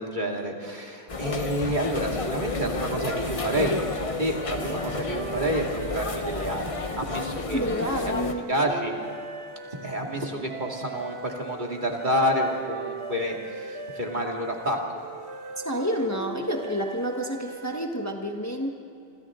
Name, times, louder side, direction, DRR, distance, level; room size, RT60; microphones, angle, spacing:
voice 1, 0.0-3.9 4.2-7.6 8.0-8.1 8.5-9.0 9.8-14.8, equal, 45° right, 0 dB, 2.6 m, -29 dB
sound 1, 1.1-8.3, left 3 dB, 35° left, 0.9 m, -31 dB
sound 2, 3.0-18.0, right 3 dB, 90° right, 1.6 m, -40 dB
voice 2, 7.5-8.5 15.6-18.7, equal, 15° left, 2 dB, 1.4 m, -29 dB
28.0 x 26.0 x 3.8 m, 2.7 s
omnidirectional pair, 1.1 m